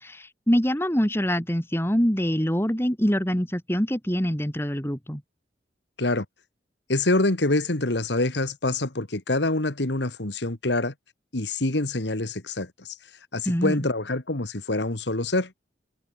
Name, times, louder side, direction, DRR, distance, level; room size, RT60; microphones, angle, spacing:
voice 1, 0.0-5.2 13.5-13.9, equal, 15° left, 3.6 m, -24 dB
voice 2, 6.9-10.9 11.3-13.0 13.3-15.5, left 2 dB, 70° left, 2.1 m, -25 dB
head